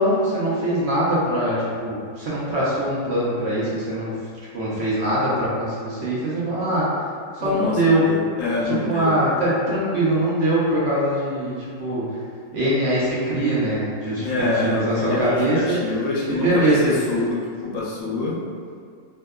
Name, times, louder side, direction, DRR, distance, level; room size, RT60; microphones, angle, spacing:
voice 1, 0.0-4.1 4.5-6.9 7.3-8.1 8.7-12.1 12.5-15.8 16.3-16.9, right 1 dB, 60° right, -8 dB, 0.8 m, -22 dB
voice 2, 7.4-9.1 14.1-18.3, left 3 dB, 80° left, -5 dB, 1.0 m, -25 dB
2.7 x 2.2 x 2.2 m, 2.1 s
omnidirectional pair, 1.4 m